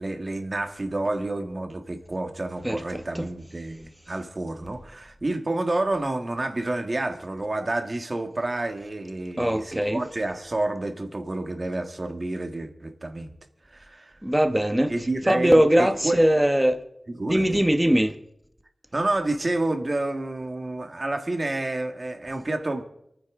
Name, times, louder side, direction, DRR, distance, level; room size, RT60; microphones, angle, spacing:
voice 1, 0.0-13.3 13.7-14.1 14.9-16.2 17.1-17.4 18.9-22.8, right 2 dB, 45° right, 1.8 m, -29 dB
voice 2, 2.6-3.3 9.4-10.0 14.2-14.9 15.3-16.8 17.3-18.1, equal, 10° right, 1.3 m, -21 dB
28.5 x 10.0 x 3.8 m
wide cardioid pair, 80°, 0 cm